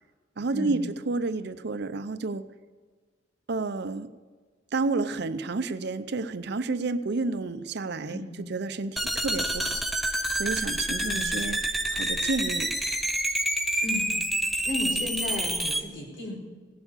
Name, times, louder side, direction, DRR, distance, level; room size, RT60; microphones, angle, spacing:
voice 1, 0.4-2.4 3.5-4.1 4.7-9.8 10.4-12.7, right 3 dB, 60° right, 12 dB, 0.6 m, -30 dB
sound 1, 9.0-15.8, right 1 dB, ahead, 0.7 m, -28 dB
voice 2, 13.8-14.1 14.4-16.4, left 2 dB, 70° left, 0 dB, 4.2 m, -34 dB
17.0 x 7.2 x 8.3 m, 1.5 s
head